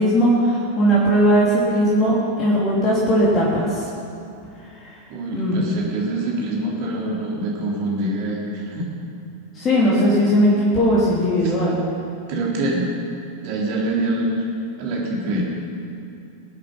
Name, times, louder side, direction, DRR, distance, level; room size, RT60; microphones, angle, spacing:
voice 1, 0.0-3.6 5.3-5.6 9.6-11.8, equal, 25° left, -7 dB, 3.4 m, -18 dB
voice 2, 5.1-8.9 11.4-11.5 12.3-12.9 13.4-14.4 14.8-15.4, right 1 dB, 45° right, -3 dB, 3.8 m, -25 dB
22.0 x 8.7 x 5.6 m, 2.6 s
figure-of-eight pair, 90°, 0 cm